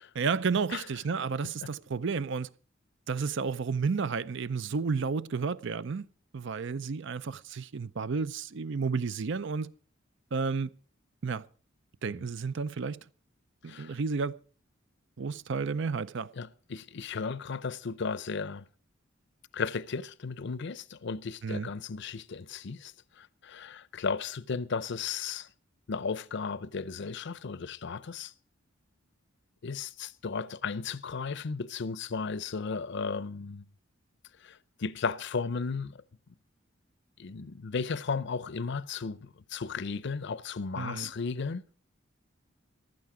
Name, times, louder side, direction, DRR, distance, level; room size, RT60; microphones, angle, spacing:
voice 1, 0.1-2.5 3.1-6.1 6.3-9.7 10.3-10.7 11.2-11.4 12.0-13.0 13.6-14.3 15.2-16.3 21.4-21.7 40.8-41.1, right 5 dB, 65° right, 0.5 m, -31 dB
voice 2, 16.4-18.6 19.5-25.5 25.9-28.3 29.6-33.6 34.4-36.0 37.2-41.6, left 5 dB, 60° left, 0.6 m, -35 dB
15.0 x 12.0 x 4.8 m
head